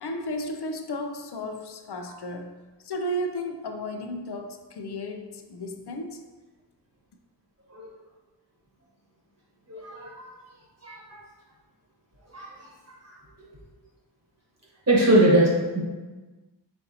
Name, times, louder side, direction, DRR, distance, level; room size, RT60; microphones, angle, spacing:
voice 1, 0.0-2.6 2.8-6.2, equal, 65° left, 5 dB, 0.6 m, -33 dB
voice 2, 9.7-10.3 10.8-11.2 12.3-12.5 13.0-13.1 14.9-15.8, right 1 dB, 35° right, -5 dB, 1.2 m, -22 dB
4.2 x 4.0 x 2.7 m, 1.3 s
wide cardioid pair, 45°, 42 cm